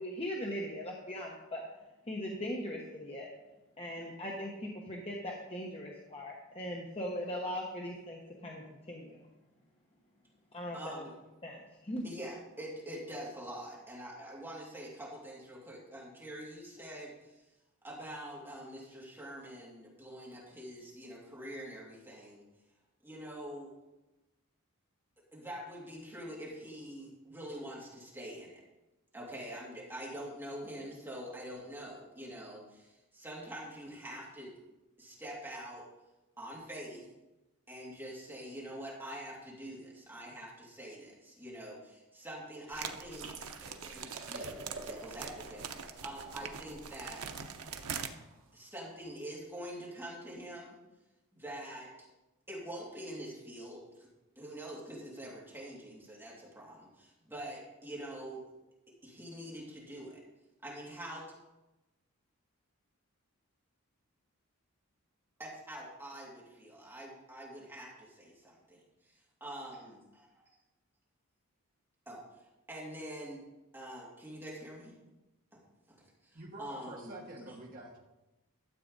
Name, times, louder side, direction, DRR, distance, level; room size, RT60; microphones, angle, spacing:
voice 1, 0.0-1.6 2.1-3.3 3.8-9.2 10.5-11.0 11.4-12.0, equal, 25° left, -2 dB, 1.1 m, -39 dB
voice 2, 10.7-11.2 12.0-17.4 17.8-22.4 23.0-23.7 25.3-28.5 29.1-34.6 35.0-35.8 36.4-37.1 37.7-43.3 43.6-47.2 48.5-50.8 51.3-51.9 52.5-54.1 54.4-58.4 59.0-60.2 60.6-61.2 65.4-70.5 72.1-72.2 72.7-73.4 73.7-74.9 76.3-77.1, right 1 dB, 10° right, -5 dB, 2.5 m, -45 dB
sound 1, 42.7-48.1, right 7 dB, 85° right, 0.8 m, -43 dB
sound 2, 43.2-48.7, right 3 dB, 60° right, 1.6 m, -49 dB
voice 3, 76.3-78.0, right 1 dB, 40° right, -3 dB, 1.2 m, -47 dB
12.5 x 7.6 x 4.0 m, 1.0 s
head